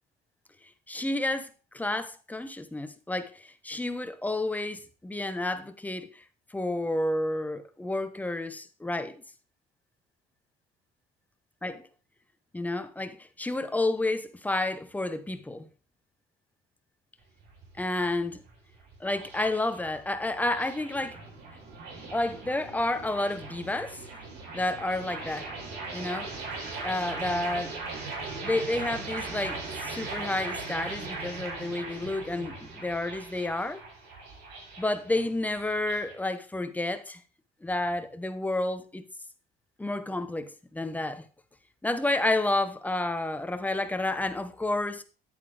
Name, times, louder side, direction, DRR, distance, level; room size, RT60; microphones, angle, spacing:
voice 1, 0.9-1.5 1.7-6.1 6.5-9.2 11.6-11.8 12.5-15.7 17.8-18.4 19.0-21.2 22.1-24.0 24.5-25.5 25.9-26.3 26.8-27.7 28.4-33.8 34.8-37.2 37.6-39.0 39.8-41.2 41.8-45.0, left 2 dB, 10° left, 0.9 m, -30 dB
sound 1, 17.2-36.2, right 3 dB, 80° right, 3.9 m, -40 dB
10.0 x 8.4 x 3.4 m
cardioid pair, 110°, 17 cm